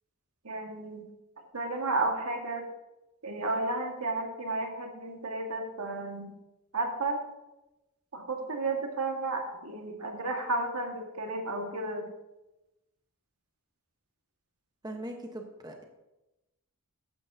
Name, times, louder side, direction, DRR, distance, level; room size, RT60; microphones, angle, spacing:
voice 1, 0.4-1.0 1.5-2.7 3.2-6.3 6.7-7.2 8.1-12.1, right 2 dB, 80° right, 3 dB, 1.7 m, -32 dB
voice 2, 14.8-15.8, right 1 dB, 20° right, 3 dB, 1.0 m, -40 dB
13.5 x 10.0 x 2.8 m, 0.98 s
head